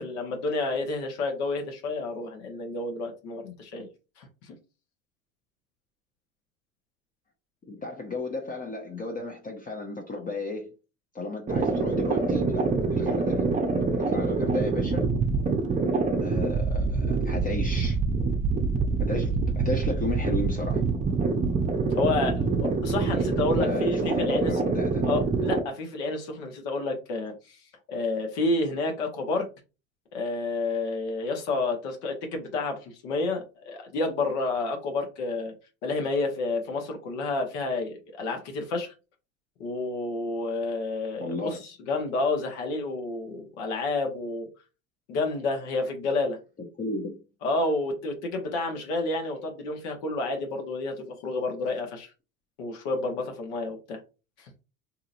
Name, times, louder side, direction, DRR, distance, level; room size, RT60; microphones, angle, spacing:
voice 1, 0.0-3.9 4.2-4.5 21.9-24.5 25.1-27.6 27.9-29.5 30.1-35.5 35.8-38.9 39.6-44.5 45.1-46.4 47.4-52.1 52.6-54.0 54.4-54.5, left 3 dB, 70° left, 1.0 m, -30 dB
voice 2, 7.7-10.7 11.1-13.4 14.0-15.1 16.2-18.0 19.0-20.8 23.6-25.0 41.2-41.6 46.8-47.2, left 2 dB, 25° left, 0.7 m, -33 dB
sound 1, 11.5-25.6, right 4 dB, 20° right, 0.6 m, -26 dB
2.8 x 2.8 x 2.5 m
hypercardioid pair, 75°, 35 cm